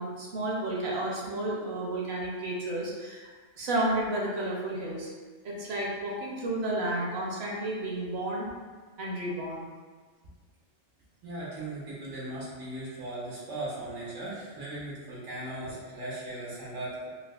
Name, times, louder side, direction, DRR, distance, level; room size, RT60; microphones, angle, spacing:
voice 1, 0.0-3.3 3.6-5.1 5.4-8.5 9.0-9.6 15.7-15.8, right 1 dB, 65° right, -3 dB, 1.0 m, -32 dB
voice 2, 11.2-17.1, right 1 dB, 85° right, -7 dB, 1.4 m, -38 dB
4.7 x 2.0 x 2.3 m, 1.4 s
omnidirectional pair, 1.2 m